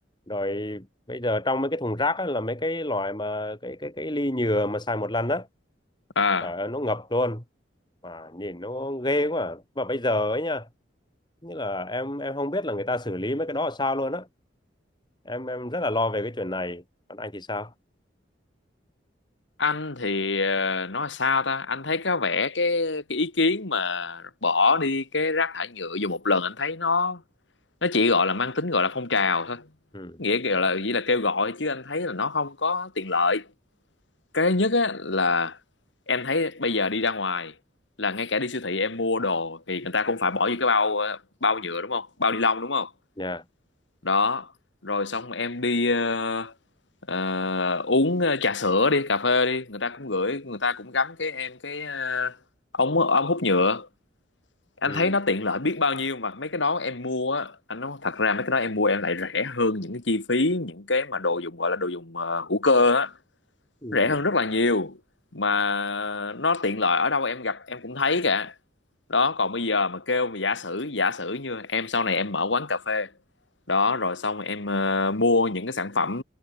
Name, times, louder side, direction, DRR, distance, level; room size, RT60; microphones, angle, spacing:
voice 1, 0.3-5.5 6.4-7.4 8.0-10.7 11.4-14.3 15.3-16.8 17.1-17.7 29.9-30.2 43.2-43.4 54.9-55.2 63.8-64.2, left 1 dB, 25° left, 5.7 m, -28 dB
voice 2, 6.2-6.5 19.6-27.2 27.8-29.6 30.2-33.5 34.3-35.6 36.1-37.5 38.0-42.9 44.0-44.5 44.8-46.5 47.1-52.4 52.7-53.9 54.8-63.1 63.9-65.0 65.3-68.5 69.1-73.1 73.7-76.2, left 3 dB, 75° left, 2.2 m, -25 dB
head